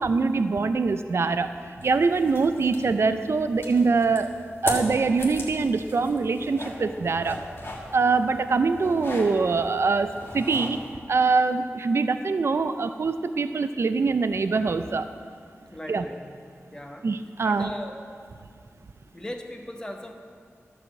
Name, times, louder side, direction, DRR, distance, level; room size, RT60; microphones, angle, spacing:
voice 1, 0.0-1.5 1.8-4.3 4.6-7.4 7.9-15.1 15.9-16.0 17.0-17.7, right 4 dB, 60° right, 10 dB, 0.4 m, -24 dB
sound 1, 1.8-10.9, left 1 dB, 50° left, 1.7 m, -38 dB
voice 2, 15.7-16.2 16.7-17.1 17.4-18.0 19.1-20.1, left 1 dB, 15° left, 3 dB, 0.9 m, -38 dB
12.0 x 4.8 x 7.1 m, 2.1 s
wide cardioid pair, 100°, 5 cm